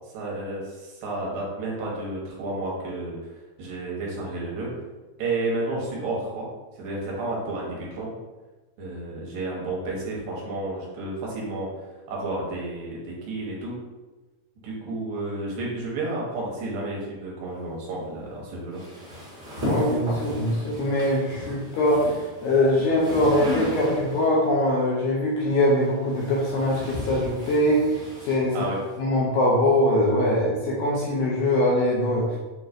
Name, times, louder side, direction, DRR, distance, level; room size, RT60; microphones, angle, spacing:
voice 1, 0.1-3.2 3.6-4.7 5.2-6.5 6.7-8.1 8.8-11.7 12.1-13.8 14.6-18.8 28.5-28.8, right 2 dB, 75° right, -4 dB, 2.7 m, -31 dB
sound 1, 18.7-24.4 25.4-29.0, left 1 dB, 50° right, 1.3 m, -35 dB
voice 2, 19.6-22.2 22.4-27.9 28.3-28.7 29.0-32.4, left 1 dB, 80° left, -5 dB, 1.9 m, -22 dB
6.8 x 3.0 x 2.5 m, 1.2 s
omnidirectional pair, 4.2 m